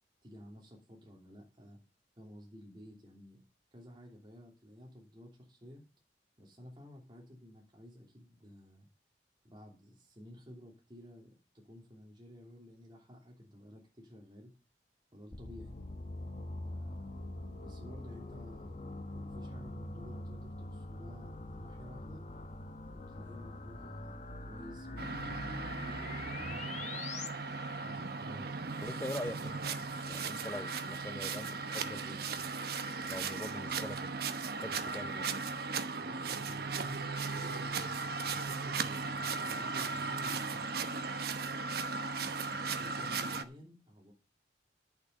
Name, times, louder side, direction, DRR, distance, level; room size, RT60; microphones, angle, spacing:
voice 1, 0.2-1.8 2.2-3.4 3.7-5.8 6.4-8.9 9.4-14.5 15.1-15.7 16.6-18.8 19.1-22.2 22.9-25.4 26.3-26.7 27.8-28.8 36.0-40.7 42.2-44.1, equal, 25° right, -1 dB, 2.9 m, -53 dB
sound 1, 15.3-27.3, left 2 dB, 40° left, 1.2 m, -44 dB
sound 2, 25.0-43.4, right 4 dB, 60° right, 1.0 m, -37 dB
voice 2, 28.8-32.5 33.1-34.1 34.6-35.3, left 1 dB, 15° left, 9 dB, 0.8 m, -43 dB
11.0 x 6.8 x 6.6 m, 0.31 s
head